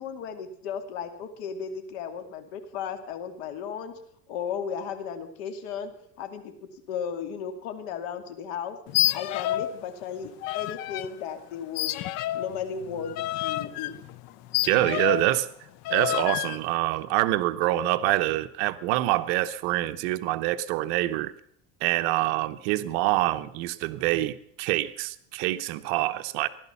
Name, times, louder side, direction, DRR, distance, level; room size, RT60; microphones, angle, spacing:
voice 1, 0.0-4.0 4.3-5.9 6.2-6.5 6.9-8.8 9.1-11.9 12.3-13.9, left 7 dB, 70° left, 7 dB, 2.4 m, -35 dB
sound 1, 8.9-9.8 10.0-11.1 11.7-15.3 15.8-16.6, left 15 dB, 55° left, 0.7 m, -29 dB
voice 2, 14.7-15.5 15.9-21.3 21.8-26.5, right 16 dB, 70° right, 12 dB, 0.9 m, -26 dB
15.5 x 12.0 x 7.0 m, 0.67 s
cardioid pair, 150°, 33 cm